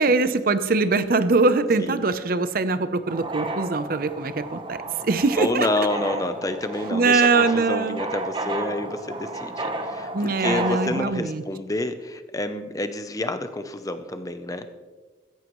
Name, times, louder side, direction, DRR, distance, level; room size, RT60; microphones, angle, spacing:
voice 1, 0.0-4.8 5.0-5.7 6.9-8.0 10.1-11.4, right 3 dB, 50° right, 11 dB, 0.7 m, -22 dB
sound 1, 3.1-11.0, right 2 dB, 25° right, 0.9 m, -32 dB
voice 2, 5.4-9.5 9.8-14.7, left 2 dB, 20° left, 9 dB, 0.6 m, -28 dB
15.5 x 14.0 x 3.1 m, 1.3 s
head